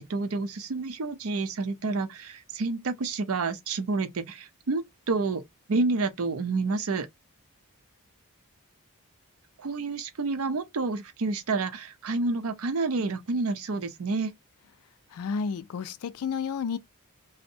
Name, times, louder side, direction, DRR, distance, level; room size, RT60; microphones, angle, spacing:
voice 1, 0.0-5.4 5.7-7.1 9.6-14.3, right 3 dB, 70° right, 0.5 m, -29 dB
voice 2, 15.1-16.8, left 6 dB, 80° left, 0.4 m, -31 dB
2.6 x 2.1 x 2.6 m
head